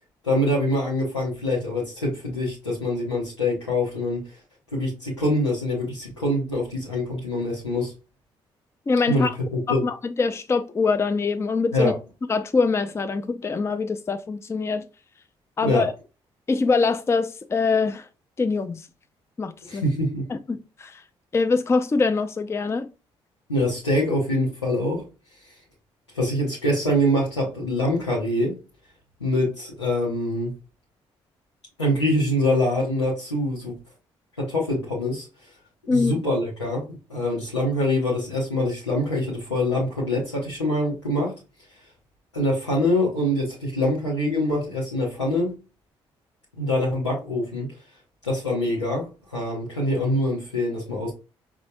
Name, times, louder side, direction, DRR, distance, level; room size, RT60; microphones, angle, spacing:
voice 1, 0.2-4.2 4.7-7.9 9.1-9.9 11.7-11.9 15.6-15.9 19.6-20.2 23.5-25.0 26.1-28.6 29.2-30.5 31.8-33.8 34.4-35.2 35.9-36.8 37.1-41.3 42.3-45.5 46.6-47.7 48.2-51.1, left 1 dB, 90° left, 0.8 m, -24 dB
voice 2, 8.9-9.3 9.7-11.9 12.3-14.9 15.6-15.9 16.5-18.1 18.4-18.8 19.4-19.8 20.3-21.0 21.3-22.9 35.9-36.1, left 4 dB, 20° left, 0.4 m, -23 dB
5.1 x 2.4 x 2.6 m
figure-of-eight pair, 40°, 14 cm